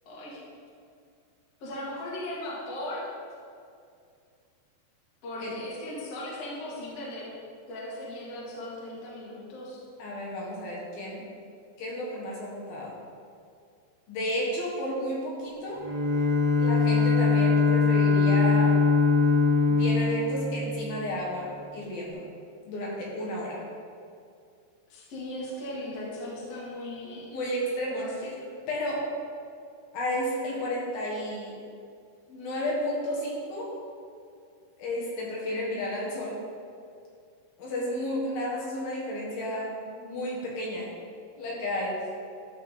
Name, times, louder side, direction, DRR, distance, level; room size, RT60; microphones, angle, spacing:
voice 1, 0.0-0.4 1.6-3.1 5.2-7.3 7.7-9.8 24.9-27.3 27.9-28.3, left 1 dB, 45° left, -5 dB, 2.4 m, -38 dB
voice 2, 10.0-11.2 11.8-12.9 14.1-15.8 16.6-18.8 19.7-22.2 22.7-23.6 27.3-28.3 28.7-29.1 29.9-31.6 32.3-33.7 34.8-36.4 37.6-40.9 41.4-42.0, left 1 dB, 70° left, -4 dB, 3.3 m, -32 dB
Bowed string instrument, 15.8-21.4, left 4 dB, 70° right, 3.1 m, -22 dB
12.5 x 4.5 x 5.6 m, 2.4 s
omnidirectional pair, 4.6 m